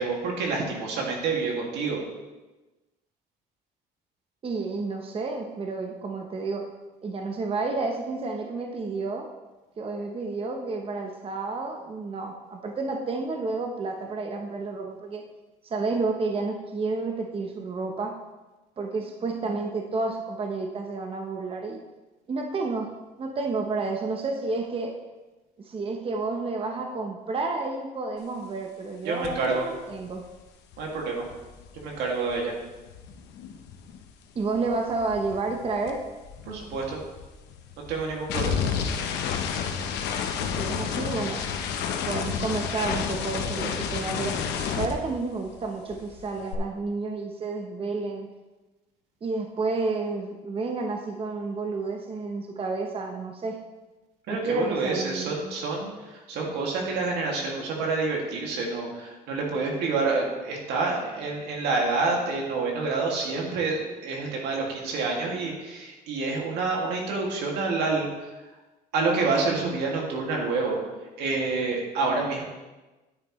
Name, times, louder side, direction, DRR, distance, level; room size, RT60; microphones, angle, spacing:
voice 1, 0.0-2.0 29.0-29.7 30.8-31.2 31.7-32.5 36.5-37.0 37.9-38.6 54.3-68.1 68.9-70.8 71.2-72.4, right 3 dB, 85° right, -1 dB, 2.3 m, -28 dB
voice 2, 4.4-6.7 7.0-9.3 9.8-15.2 15.6-18.2 18.8-21.8 22.3-25.0 25.6-30.3 34.3-36.0 40.4-41.4 42.1-44.4 44.8-48.3 49.2-53.6 54.3-55.3, right 3 dB, 35° right, 3 dB, 0.9 m, -30 dB
sound 1, 29.2-29.5 29.7-34.1 34.4-45.6 45.9-46.5, left 7 dB, 85° left, 0.9 m, -31 dB
9.8 x 8.9 x 3.2 m, 1.1 s
cardioid pair, 110°, 17 cm